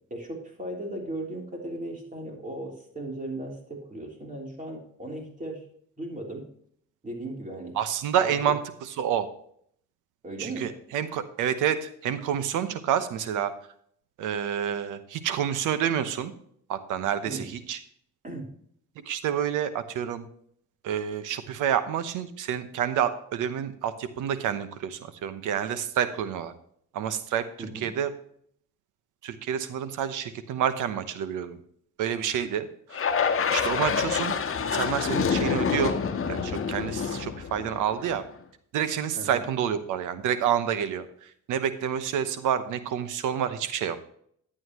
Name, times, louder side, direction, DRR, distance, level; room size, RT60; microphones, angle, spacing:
voice 1, 0.1-5.6 6.0-6.4 7.0-7.8 8.2-8.5 10.2-10.7 17.2-17.5 18.2-18.5 27.6-27.9 33.8-34.1 39.2-39.5, right 1 dB, 25° right, 0 dB, 3.5 m, -37 dB
voice 2, 7.7-9.3 10.4-13.5 14.2-16.3 16.7-17.8 19.0-20.3 20.8-26.5 26.9-27.4 27.7-28.1 29.2-31.6 32.0-33.1 33.5-36.0 36.3-38.2 38.7-44.0, right 9 dB, 90° right, 11 dB, 1.0 m, -28 dB
sound 1, 32.9-38.3, left 6 dB, 45° left, 1.3 m, -27 dB
11.0 x 8.7 x 3.0 m, 0.64 s
cardioid pair, 90°, 30 cm